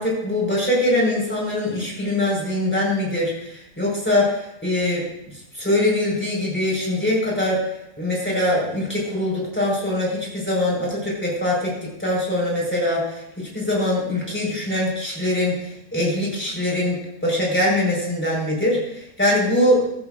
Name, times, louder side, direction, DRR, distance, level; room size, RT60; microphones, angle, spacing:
voice 1, 0.0-7.6 8.0-19.8, left 1 dB, 5° left, -3 dB, 4.5 m, -23 dB
14.5 x 14.0 x 2.5 m, 0.81 s
omnidirectional pair, 1.7 m